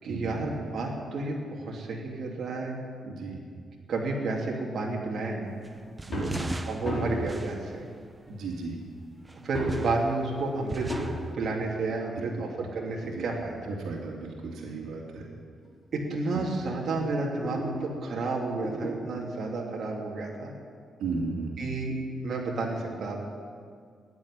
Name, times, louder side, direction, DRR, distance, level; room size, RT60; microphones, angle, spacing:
voice 1, 0.0-2.7 3.9-5.6 6.7-7.8 9.4-10.9 11.3-13.7 15.9-20.5 21.6-22.0 22.2-23.3, right 3 dB, 55° right, -1 dB, 2.9 m, -31 dB
voice 2, 3.0-3.4 6.1-6.5 8.3-8.8 12.2-12.4 13.0-13.3 13.7-15.2 16.3-16.4 21.0-21.5, right 4 dB, 85° right, -1 dB, 2.4 m, -35 dB
sound 1, 5.6-8.7 9.2-11.3, right 2 dB, 15° right, 0.7 m, -40 dB
sound 2, 6.0-6.4 6.8-7.3 8.3-8.4 9.5-9.9 10.9-11.2 12.6-14.2 14.9-15.0 15.6-15.7 16.0-16.1 16.5-17.8 18.6-19.0 20.3-20.4, equal, 25° left, 4.6 m, -35 dB
14.5 x 9.8 x 10.0 m, 2.1 s
cardioid pair, 145°, 0 cm